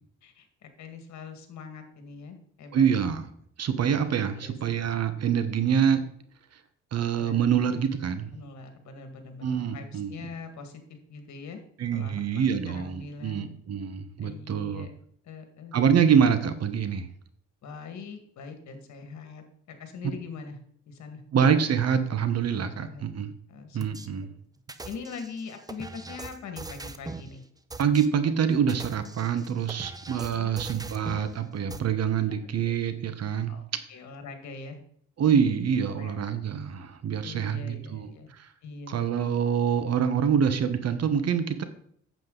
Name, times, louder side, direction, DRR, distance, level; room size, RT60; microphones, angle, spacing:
voice 1, 0.2-2.9 4.0-4.6 7.1-7.4 8.3-10.8 11.1-11.6 11.9-13.4 14.2-14.9 15.2-15.7 17.6-20.6 20.9-21.2 22.8-23.1 23.5-23.8 24.8-27.4 28.2-28.3 30.2-30.6 33.5-33.6 33.9-34.8 36.0-36.1 37.2-38.3 38.6-39.0, left 4 dB, 65° left, 6 dB, 1.9 m, -42 dB
voice 2, 2.7-3.2 3.6-6.1 6.9-8.3 9.4-10.1 11.8-14.9 15.7-17.1 21.3-23.3 23.7-24.3 27.8-33.6 35.2-38.1 38.9-41.6, right 7 dB, 55° right, 10 dB, 1.1 m, -25 dB
sound 1, 23.8-24.1 24.7-27.3 27.7-28.1 28.6-31.3 31.7-31.8, right 2 dB, 10° right, 0.7 m, -41 dB
9.1 x 7.5 x 3.9 m, 0.65 s
cardioid pair, 90°, 30 cm